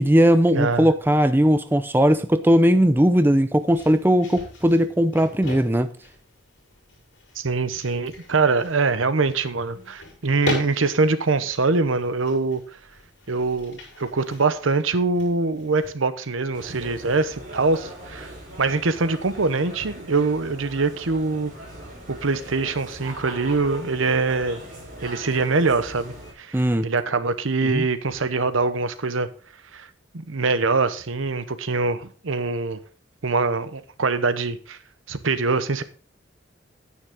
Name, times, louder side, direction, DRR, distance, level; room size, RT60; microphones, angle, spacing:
voice 1, 0.0-5.9 26.5-26.9 27.7-27.8, equal, 10° right, 0.5 m, -18 dB
voice 2, 0.5-0.9 7.4-12.6 13.3-18.3 18.6-21.5 22.1-24.6 25.0-29.3 29.7-29.9 30.1-32.8 33.2-34.8 35.1-35.8, right 3 dB, 90° right, 0.9 m, -23 dB
sound 1, 3.6-15.9, left 2 dB, 75° left, 5.7 m, -39 dB
sound 2, 16.5-26.3, right 1 dB, 45° right, 5.5 m, -40 dB
9.8 x 9.4 x 3.7 m
head